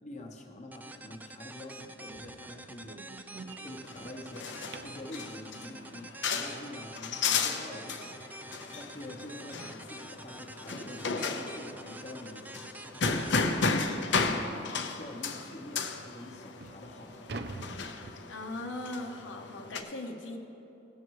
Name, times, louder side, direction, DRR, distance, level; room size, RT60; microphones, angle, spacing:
voice 1, 0.0-3.2 3.6-4.5 4.8-8.1 8.7-13.5 14.1-17.4, left 1 dB, 35° left, 0 dB, 1.0 m, -46 dB
sound 1, 0.7-14.4, right 2 dB, 10° right, 0.3 m, -48 dB
sound 2, 2.1-5.2 8.0-8.1 8.5-8.7 9.1-9.2 9.7-9.8 10.9-11.0 11.4-11.6 12.2-12.3 12.7-12.8 13.3-13.4 14.8-15.1 15.8-15.9 16.4-18.7, right 3 dB, 60° right, 0.5 m, -46 dB
sound 3, 3.8-19.8, left 4 dB, 70° left, 0.7 m, -34 dB
voice 2, 18.3-20.4, left 2 dB, 85° left, 2 dB, 1.0 m, -39 dB
17.0 x 6.6 x 4.7 m, 2.9 s
head